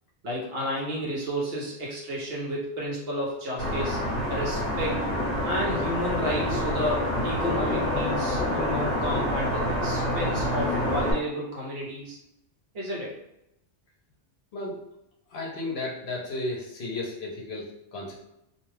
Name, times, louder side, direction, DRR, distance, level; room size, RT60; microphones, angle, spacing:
voice 1, 0.2-4.0 4.3-5.0 5.4-12.2 12.7-13.1, equal, 60° right, -3 dB, 1.0 m, -31 dB
sound 1, 3.6-11.1, left 1 dB, 35° left, 1.1 m, -27 dB
voice 2, 15.3-18.1, left 2 dB, 65° left, -3 dB, 0.9 m, -34 dB
2.5 x 2.2 x 3.2 m, 0.84 s
omnidirectional pair, 1.2 m